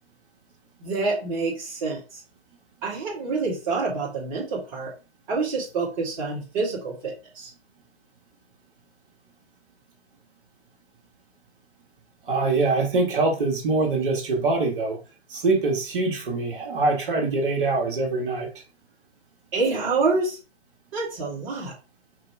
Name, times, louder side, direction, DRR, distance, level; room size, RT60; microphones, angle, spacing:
voice 1, 0.8-2.2 2.8-4.9 5.3-7.5 19.5-20.4 20.9-21.7, right 4 dB, 30° right, -4 dB, 1.5 m, -27 dB
voice 2, 12.3-15.0 15.3-18.5, right 3 dB, 50° right, 1 dB, 1.7 m, -24 dB
5.1 x 2.3 x 4.6 m, 0.31 s
hypercardioid pair, 140°, 33 cm